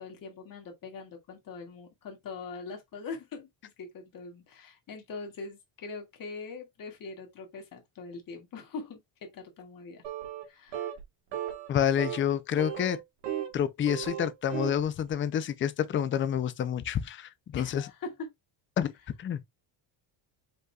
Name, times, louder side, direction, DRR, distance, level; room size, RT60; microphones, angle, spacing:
voice 1, 0.0-10.0 10.5-10.9 17.5-18.3, left 4 dB, 45° left, 2.0 m, -42 dB
sound 1, 10.0-10.5 10.7-11.0 11.3-11.7 12.0-12.2 12.6-13.6 13.8-14.8, right 10 dB, 65° right, 1.6 m, -35 dB
voice 2, 11.7-13.0 13.5-17.8 18.8-18.9 19.2-19.4, left 9 dB, 25° left, 0.4 m, -28 dB
5.4 x 3.8 x 2.3 m
cardioid pair, 140°, 48 cm